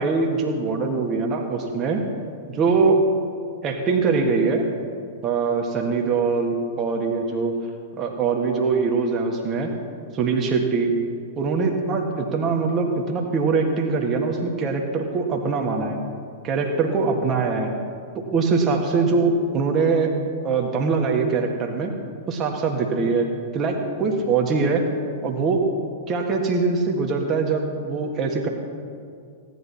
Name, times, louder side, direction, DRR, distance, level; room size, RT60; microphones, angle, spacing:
voice 1, 0.0-2.0 2.5-3.0 3.6-4.7 5.2-7.6 8.0-9.7 10.1-10.9 11.4-16.0 16.4-17.7 18.2-20.1 20.4-21.9 22.3-23.3 23.5-24.8 25.2-25.6 26.1-28.5, right 4 dB, 30° right, 2 dB, 2.0 m, -22 dB
17.5 x 11.0 x 4.3 m, 2.3 s
figure-of-eight pair, 100°, 0 cm